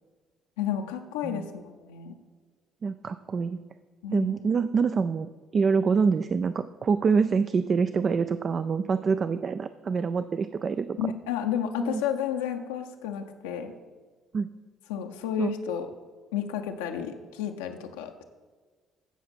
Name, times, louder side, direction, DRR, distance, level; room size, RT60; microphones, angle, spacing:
voice 1, 0.6-2.2 4.0-4.3 11.0-13.7 14.9-15.9 16.3-18.2, left 9 dB, 70° left, 5 dB, 0.6 m, -31 dB
voice 2, 2.8-3.6 4.1-11.0 11.8-12.0 14.3-14.5 15.4-15.5, right 5 dB, 40° right, 12 dB, 0.3 m, -26 dB
15.0 x 5.8 x 4.3 m, 1.4 s
figure-of-eight pair, 45°, 0 cm